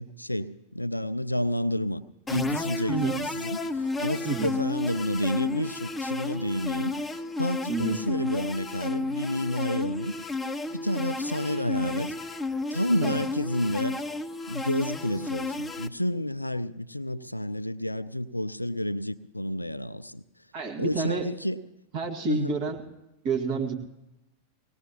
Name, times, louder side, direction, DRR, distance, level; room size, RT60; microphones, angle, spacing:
voice 1, 0.0-2.0 2.3-7.1 7.4-10.1 10.7-12.2 12.7-14.0 14.5-20.2 20.8-21.6 22.3-22.6, left 1 dB, 85° left, 14 dB, 0.4 m, -30 dB
sound 1, 2.3-15.9, left 2 dB, 10° left, 0.5 m, -32 dB
voice 2, 20.5-21.3 21.9-22.8 23.2-23.7, right 4 dB, 45° right, 2 dB, 1.9 m, -29 dB
20.0 x 18.5 x 2.9 m, 0.91 s
figure-of-eight pair, 90°, 0 cm